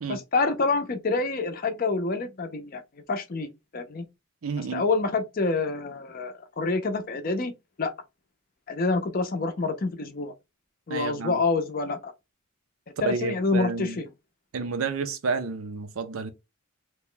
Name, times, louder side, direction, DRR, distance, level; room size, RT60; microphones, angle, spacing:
voice 1, 0.1-2.8 3.1-4.1 4.7-7.5 7.8-7.9 8.7-10.3 10.9-12.1 13.0-14.1, left 3 dB, 40° left, 0.5 m, -27 dB
voice 2, 4.4-4.8 10.9-11.4 13.0-14.0 14.5-16.3, right 4 dB, 70° right, 0.5 m, -30 dB
2.9 x 2.2 x 3.7 m
head